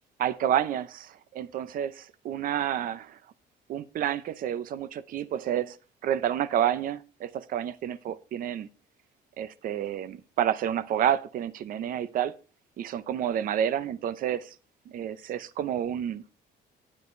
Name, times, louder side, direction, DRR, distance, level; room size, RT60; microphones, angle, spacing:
voice 1, 0.2-3.2 3.7-5.8 6.0-8.7 9.4-12.3 12.8-14.5 14.9-16.2, right 10 dB, 55° right, 0.6 m, -29 dB
9.9 x 9.4 x 3.2 m
cardioid pair, 110°, 17 cm